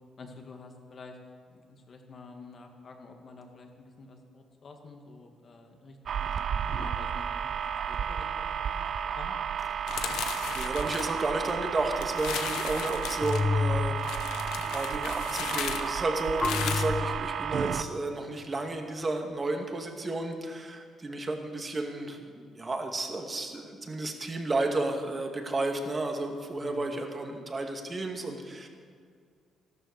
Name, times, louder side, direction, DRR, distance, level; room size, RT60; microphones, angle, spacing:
voice 1, 0.2-1.2 1.5-6.3 6.8-8.9 9.1-9.4 26.6-27.1, left 3 dB, 45° left, 3 dB, 2.2 m, -49 dB
sound 1, 6.1-17.8, right 8 dB, 60° right, 0.6 m, -32 dB
voice 2, 9.8-14.4 14.7-28.7, right 2 dB, 30° right, 3 dB, 2.2 m, -32 dB
sound 2, 9.9-11.7 12.0-13.4 14.0-16.8, left 9 dB, 85° left, 0.9 m, -36 dB
sound 3, 10.9-11.0 13.2-14.9 16.4-17.9, left 4 dB, 30° left, 0.3 m, -31 dB
13.5 x 12.5 x 6.6 m, 2.1 s
cardioid pair, 90°, 0 cm